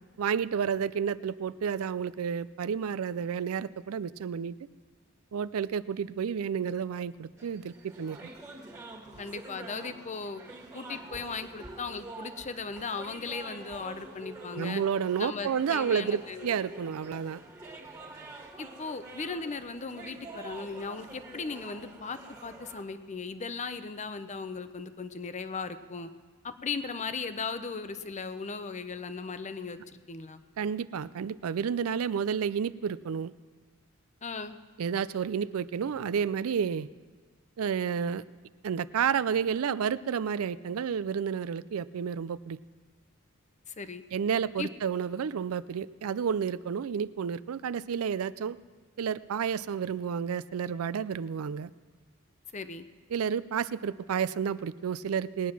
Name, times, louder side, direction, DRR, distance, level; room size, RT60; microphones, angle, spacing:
voice 1, 0.2-4.6 5.3-8.2 14.6-17.4 30.6-33.3 34.8-36.9 37.6-38.2 38.6-42.6 44.1-48.6 49.0-51.7 53.1-55.5, right 7 dB, 75° right, 17 dB, 0.4 m, -31 dB
sound 1, 7.4-22.8, right 3 dB, 15° right, 1.8 m, -46 dB
voice 2, 9.2-10.4 10.7-14.8 15.2-16.6 18.6-26.1 26.4-30.4 34.2-34.6 43.7-44.0 44.6-44.7 52.5-52.9, left 4 dB, 35° left, 10 dB, 0.7 m, -37 dB
19.5 x 9.2 x 6.0 m, 1.5 s
head